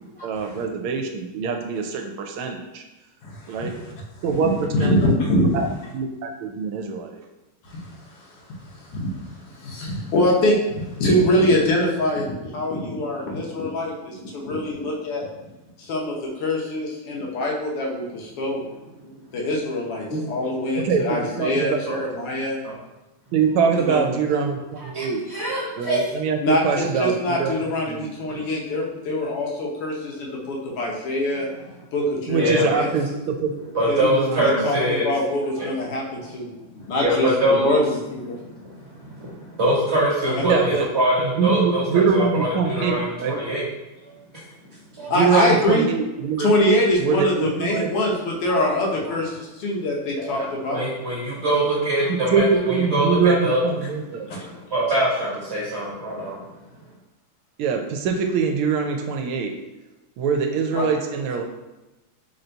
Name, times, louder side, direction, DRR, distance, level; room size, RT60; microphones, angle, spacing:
voice 1, 0.2-2.8 3.5-3.7 4.2-5.0 5.4-5.5 5.9-7.2 20.8-21.0 21.4-21.8 23.3-25.2 25.8-27.5 27.9-28.1 32.3-33.5 34.0-34.6 40.4-40.9 41.4-43.4 45.1-46.5 47.0-47.9 52.1-54.3 57.6-59.5 60.2-61.4, right 5 dB, 80° right, 4 dB, 1.4 m, -23 dB
voice 2, 3.2-3.7 4.4-5.6 7.7-7.9 8.9-9.2 9.6-15.3 15.8-18.6 19.3-22.6 23.8-24.1 26.4-31.5 31.9-33.0 33.9-34.0 34.4-34.8 35.0-36.5 36.8-38.4 40.2-40.5 45.1-45.9 46.4-50.8 54.3-54.5 60.7-60.9, left 1 dB, 85° left, -2 dB, 1.9 m, -24 dB
voice 3, 24.9-26.1 28.3-28.4 32.4-32.6 33.7-35.0 35.6-35.7 36.8-37.8 38.4-43.6 44.0-44.1 45.0-45.1 48.5-48.7 49.0-49.1 50.3-53.6 54.4-56.4, right 1 dB, 35° right, -6 dB, 1.3 m, -24 dB
4.1 x 2.6 x 4.3 m, 1.0 s
omnidirectional pair, 2.4 m